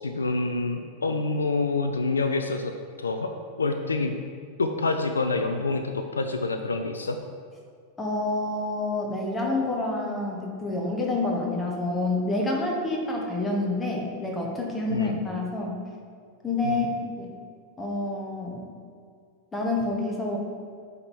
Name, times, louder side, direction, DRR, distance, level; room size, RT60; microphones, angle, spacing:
voice 1, 0.0-3.3 3.6-4.2 4.6-7.2 14.9-15.2 16.6-16.8, left 3 dB, 75° left, 6 dB, 0.4 m, -27 dB
voice 2, 8.0-15.8 16.4-16.9 17.2-17.3 17.8-18.6 19.5-20.4, left 2 dB, 15° left, -1 dB, 1.2 m, -28 dB
8.5 x 3.6 x 4.2 m, 2.1 s
figure-of-eight pair, 90°, 0 cm